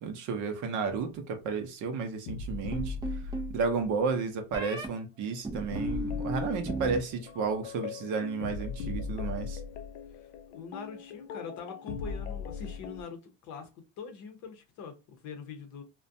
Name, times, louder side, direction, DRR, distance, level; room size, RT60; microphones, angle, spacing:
voice 1, 0.0-3.0 3.5-9.6, right 5 dB, 50° right, 0.7 m, -32 dB
sound 1, 2.3-4.0 5.7-13.0, left 5 dB, 85° left, 0.5 m, -39 dB
sound 2, 2.7-3.5 4.5-4.9 5.4-7.0 7.3-7.8, right 2 dB, 10° right, 0.3 m, -36 dB
voice 2, 10.1-13.7 14.0-15.8, left 6 dB, 45° left, 0.7 m, -43 dB
2.4 x 2.2 x 2.6 m
supercardioid pair, 130°, 40 cm